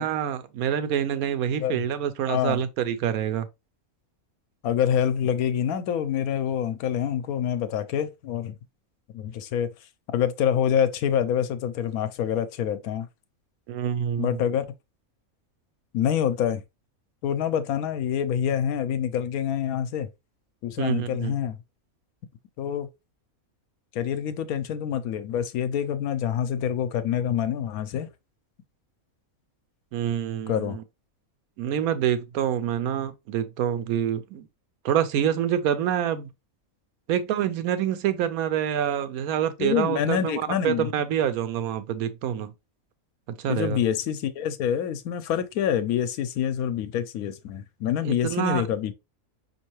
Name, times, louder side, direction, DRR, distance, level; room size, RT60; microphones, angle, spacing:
voice 1, 0.0-3.5 13.7-14.4 20.8-21.3 29.9-30.8 31.6-34.5 34.8-36.3 37.1-42.5 43.4-43.8 48.0-48.6, right 9 dB, 80° right, 1.1 m, -26 dB
voice 2, 2.3-2.6 4.6-8.5 9.1-9.7 10.1-13.1 14.2-14.6 15.9-16.6 17.2-20.1 20.6-21.6 22.6-22.9 23.9-28.1 30.5-30.8 39.6-40.9 43.5-48.9, left 9 dB, 85° left, 1.1 m, -26 dB
5.3 x 2.8 x 3.0 m
omnidirectional pair, 1.5 m